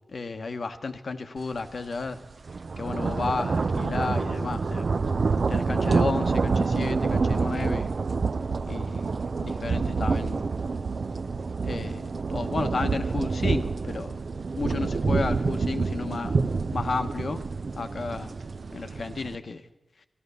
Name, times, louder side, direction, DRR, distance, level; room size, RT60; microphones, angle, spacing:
voice 1, 0.1-2.2 2.8-4.9 5.5-7.9 8.7-9.1 9.4-10.5 11.6-12.0 12.3-14.1 14.6-16.4 16.7-17.4 17.8-18.3 18.7-19.6, left 4 dB, 70° left, 0.9 m, -32 dB
sound 1, 1.5-1.7 2.1-19.4, right 4 dB, 70° right, 0.4 m, -27 dB
12.5 x 12.5 x 6.7 m
wide cardioid pair, 70°, 0 cm